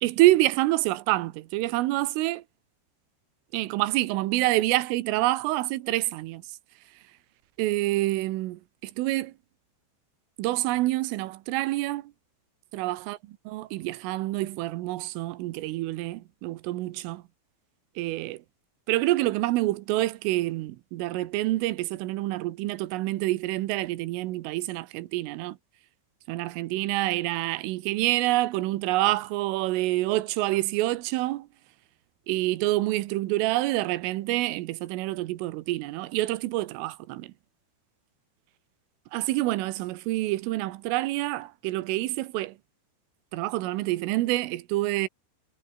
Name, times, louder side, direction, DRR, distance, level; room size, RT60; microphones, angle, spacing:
voice 1, 0.0-2.4 3.5-6.4 7.6-9.3 10.4-12.1 12.7-13.2 13.5-17.2 18.0-18.4 18.9-25.6 26.3-31.5 32.3-37.3 39.1-42.6 43.3-45.1, right 17 dB, 85° right, 3.6 m, -27 dB
omnidirectional pair, 5.7 m